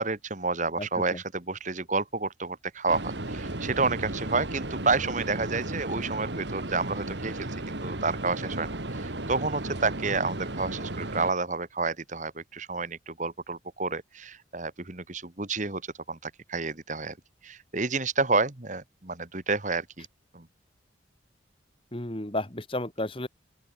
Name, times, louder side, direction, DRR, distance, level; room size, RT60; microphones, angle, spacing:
voice 1, 0.0-15.8 16.1-17.2 17.4-20.1 20.3-20.5, right 3 dB, 40° right, 1.7 m, -30 dB
voice 2, 0.8-1.2 21.9-23.3, left 1 dB, 25° left, 1.9 m, -33 dB
sound 1, 2.9-11.3, right 1 dB, 60° right, 2.2 m, -34 dB
open air
head